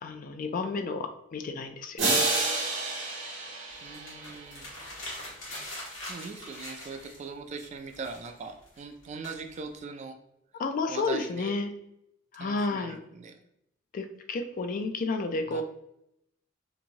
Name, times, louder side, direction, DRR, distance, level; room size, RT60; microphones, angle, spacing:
voice 1, 0.0-2.3 10.6-11.7 12.3-13.0 13.9-15.6, left 3 dB, 45° left, 7 dB, 0.3 m, -31 dB
sound 1, 2.0-4.8, right 3 dB, 70° right, 1.0 m, -29 dB
sound 2, 3.7-7.3 7.6-9.8, left 1 dB, 90° left, 1.2 m, -43 dB
voice 2, 3.8-4.7 6.1-10.1 10.9-11.6 12.4-13.3 15.5-15.6, right 4 dB, 35° right, 5 dB, 0.3 m, -40 dB
2.9 x 2.6 x 2.7 m, 0.80 s
head